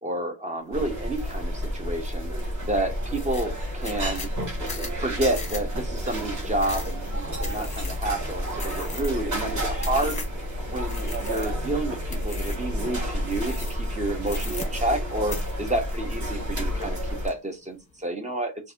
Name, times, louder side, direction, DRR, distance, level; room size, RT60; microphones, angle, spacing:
voice 1, 0.0-2.3 2.6-4.3 4.6-10.2 10.7-18.5, right 1 dB, 15° right, 0.5 m, -30 dB
sound 1, 0.7-17.3, equal, 35° right, 1.3 m, -30 dB
sound 2, 1.2-1.4 1.9-2.4 2.7-2.8 3.1-10.5 10.9-11.7 12.1-12.7 13.3-13.9 14.2-15.0 15.3-16.5 16.8-17.3, left 3 dB, 15° left, 0.9 m, -40 dB
2.6 x 2.5 x 3.4 m
cardioid pair, 150°, 49 cm